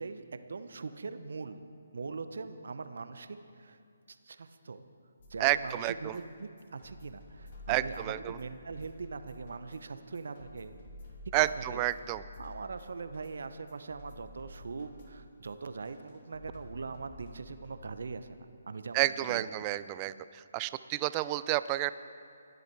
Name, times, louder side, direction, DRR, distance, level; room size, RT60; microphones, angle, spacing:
voice 1, 0.0-1.6 1.9-3.8 4.1-4.8 5.3-10.8 11.4-11.8 12.4-18.4 18.7-19.5, right 4 dB, 65° right, 10 dB, 1.0 m, -41 dB
sound 1, 5.2-18.2, left 2 dB, 45° left, 3.0 m, -52 dB
voice 2, 5.4-6.2 7.7-8.4 11.3-12.2 18.9-21.9, right 16 dB, 25° right, 15 dB, 0.5 m, -30 dB
27.0 x 11.0 x 4.7 m, 2.4 s
figure-of-eight pair, 145°, 0 cm